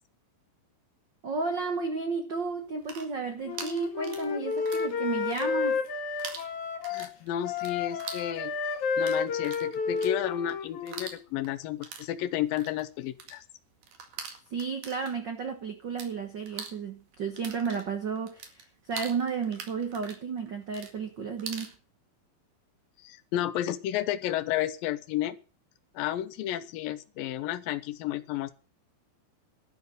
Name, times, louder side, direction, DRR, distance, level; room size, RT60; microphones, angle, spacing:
voice 1, 1.2-5.8 14.5-21.7, right 5 dB, 90° right, 0.9 m, -33 dB
sound 1, 2.7-4.9 5.2-5.9 6.2-16.1 16.4-21.7, right 6 dB, 60° right, 3.5 m, -44 dB
Wind instrument woodwind instrument, 3.5-7.1 7.4-11.1, left 5 dB, 60° left, 3.0 m, -31 dB
voice 2, 6.9-8.5 9.0-13.5 23.0-25.4 25.9-28.5, left 12 dB, 80° left, 2.7 m, -32 dB
12.0 x 6.9 x 9.5 m
omnidirectional pair, 4.2 m